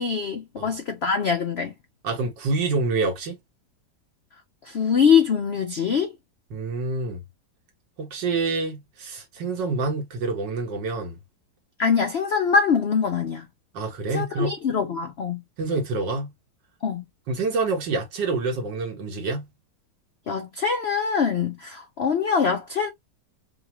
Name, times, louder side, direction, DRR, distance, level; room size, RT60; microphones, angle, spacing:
voice 1, 0.0-1.7 4.7-6.1 11.8-13.4 14.1-15.4 16.8-17.0 20.3-22.9, left 6 dB, 70° left, 0.6 m, -23 dB
voice 2, 2.0-3.4 6.5-7.2 8.0-11.2 13.7-14.6 15.6-16.3 17.3-19.5, right 3 dB, 80° right, 2.0 m, -27 dB
5.6 x 2.3 x 2.9 m
omnidirectional pair, 1.9 m